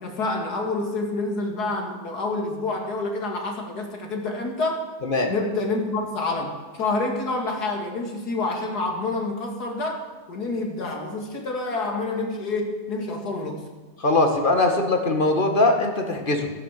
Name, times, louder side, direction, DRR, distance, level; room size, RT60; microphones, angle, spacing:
voice 1, 0.0-4.8 5.3-10.0 10.3-13.6, left 2 dB, 75° left, 2 dB, 2.7 m, -28 dB
voice 2, 14.0-16.5, left 2 dB, 30° left, 4 dB, 1.9 m, -21 dB
13.0 x 11.0 x 7.4 m, 1.3 s
omnidirectional pair, 1.7 m